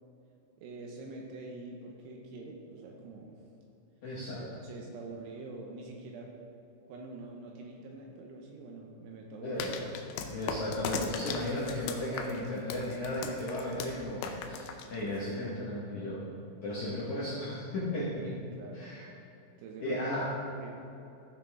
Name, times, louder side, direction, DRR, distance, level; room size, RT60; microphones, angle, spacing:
voice 1, 0.6-3.4 4.4-6.3 6.9-9.7 10.1-10.2 18.2-18.8 19.6-20.0 20.5-20.7, right 3 dB, 80° right, 0 dB, 2.6 m, -45 dB
voice 2, 4.0-4.4 9.4-9.8 10.3-16.2 16.6-18.3 18.7-19.1 19.8-20.3, left 1 dB, 70° left, -8 dB, 1.8 m, -35 dB
sound 1, 9.6-15.4, left 6 dB, 90° left, 2.4 m, -39 dB
14.5 x 6.1 x 3.6 m, 2.8 s
omnidirectional pair, 5.5 m